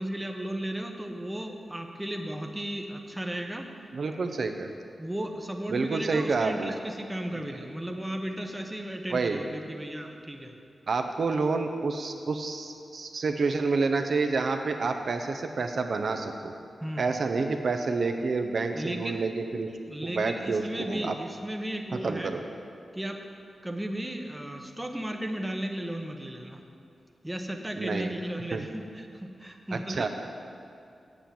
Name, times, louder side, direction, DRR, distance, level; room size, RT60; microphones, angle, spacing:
voice 1, 0.0-3.7 5.0-10.6 16.8-17.2 18.7-19.2 19.9-22.3 22.9-23.2 23.6-26.6 27.2-30.1, right 1 dB, 10° right, 4 dB, 0.8 m, -35 dB
voice 2, 3.9-4.7 5.7-6.8 7.4-7.5 9.1-9.4 10.9-16.5 17.0-19.7 20.0-21.2 21.9-22.4 27.8-28.1 28.5-28.6 29.9-30.1, right 4 dB, 55° right, 5 dB, 0.6 m, -28 dB
8.5 x 8.1 x 7.5 m, 2.5 s
wide cardioid pair, 140°, 0 cm